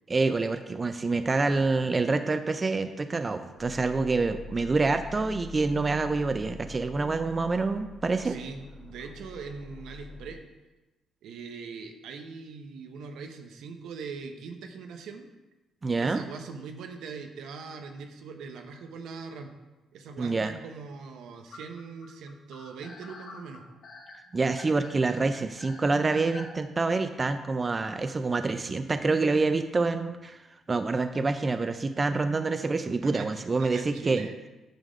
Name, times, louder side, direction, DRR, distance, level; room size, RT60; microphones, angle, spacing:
voice 1, 0.1-8.4 15.8-16.2 20.2-20.5 24.3-30.4 30.7-34.3, right 3 dB, 30° right, 9 dB, 0.4 m, -27 dB
sound 1, 3.6-10.4, left 3 dB, 25° left, 2.3 m, -45 dB
voice 2, 8.2-10.4 11.2-15.3 16.0-19.5 19.9-23.6 33.0-33.3 33.6-34.4, right 5 dB, 80° right, 5 dB, 0.8 m, -41 dB
sound 2, 21.5-26.6, left 3 dB, 60° left, 3.0 m, -47 dB
9.0 x 3.5 x 6.4 m, 1.1 s
cardioid pair, 90°, 0 cm